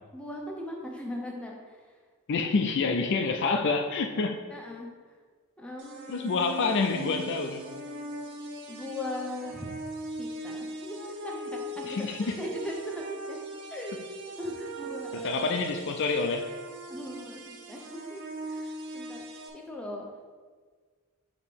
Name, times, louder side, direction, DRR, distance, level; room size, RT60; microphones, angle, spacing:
voice 1, 0.1-1.8 4.5-4.9 5.6-6.5 8.7-9.8 10.2-13.4 13.7-14.1 14.4-15.5 16.9-18.2 18.5-19.2 19.5-20.1, left 1 dB, 5° left, -1 dB, 0.7 m, -39 dB
voice 2, 2.3-4.4 6.1-7.7 11.9-12.3 15.1-16.5, left 4 dB, 50° left, 5 dB, 0.4 m, -27 dB
sound 1, 5.8-19.5, right 2 dB, 55° right, 0.7 m, -40 dB
6.4 x 2.9 x 5.1 m, 1.6 s
head